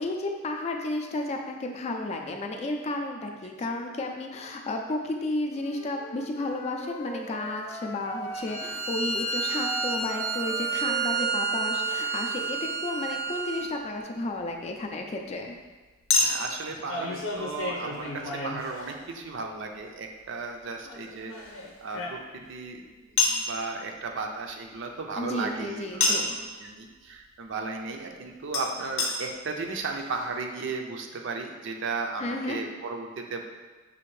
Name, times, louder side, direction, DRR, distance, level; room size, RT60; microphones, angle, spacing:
voice 1, 0.0-15.5 25.2-26.3 32.2-32.6, left 2 dB, 35° left, 2 dB, 0.4 m, -32 dB
Wind instrument woodwind instrument, 5.5-8.7 9.1-12.5, right 2 dB, 10° left, 0.8 m, -41 dB
Bowed string instrument, 8.3-13.7, right 4 dB, 90° right, 0.9 m, -30 dB
Chink clink, 13.3-13.4 16.1-19.3 20.8-22.5 23.2-23.5 26.0-26.4 28.5-28.6 29.0-29.1 29.8-29.9 30.0-30.1, left 3 dB, 80° left, 0.7 m, -29 dB
voice 2, 16.2-21.3 21.8-22.2 22.5-33.4, right 4 dB, 65° right, 3 dB, 0.5 m, -35 dB
5.5 x 2.5 x 3.2 m, 1.3 s
head